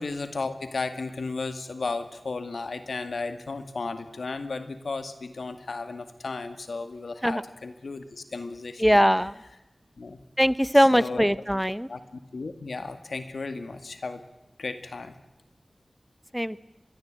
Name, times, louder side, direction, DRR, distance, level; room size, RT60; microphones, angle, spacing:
voice 1, 0.0-8.8 10.0-10.2 10.7-11.3 11.9-14.2 14.6-15.2, left 3 dB, 85° left, 10 dB, 2.1 m, -34 dB
voice 2, 8.8-9.3 10.4-11.9 16.3-16.6, equal, ahead, 17 dB, 0.8 m, -21 dB
25.5 x 22.0 x 9.0 m, 0.92 s
cardioid pair, 40°, 0 cm